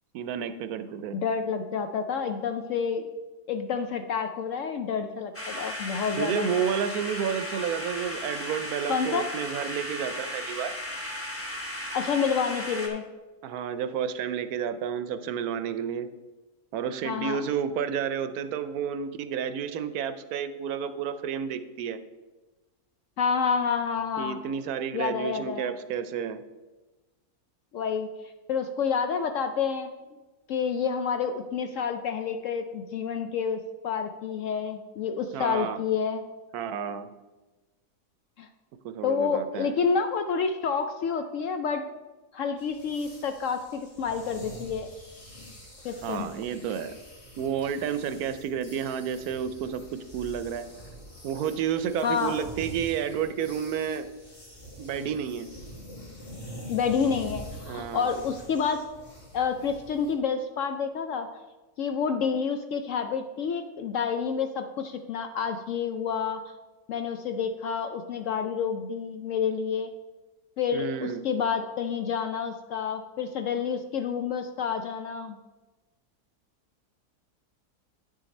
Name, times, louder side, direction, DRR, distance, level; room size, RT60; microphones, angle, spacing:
voice 1, 0.1-1.2 6.2-10.7 13.4-16.1 16.7-22.0 24.2-26.4 35.3-35.8 36.5-37.1 38.8-39.7 46.0-46.9 47.4-50.7 51.2-54.1 54.8-55.5 57.7-58.2 70.7-71.2, right 8 dB, 75° right, 11 dB, 1.0 m, -31 dB
voice 2, 1.1-3.0 3.5-6.5 8.9-9.2 11.9-13.0 17.0-17.5 23.2-24.4 24.9-25.7 27.7-28.1 28.5-29.9 30.5-36.2 38.4-38.5 39.0-41.8 42.3-44.9 45.8-46.3 52.0-52.3 56.7-58.8 59.3-61.3 61.8-66.4 66.9-69.9 70.6-75.4, left 6 dB, 70° left, 7 dB, 0.8 m, -29 dB
sound 1, 5.3-12.9, left 1 dB, 10° left, 0.9 m, -36 dB
sound 2, 42.6-60.1, equal, 25° left, 1.8 m, -45 dB
9.1 x 6.4 x 4.1 m, 1.2 s
omnidirectional pair, 1.7 m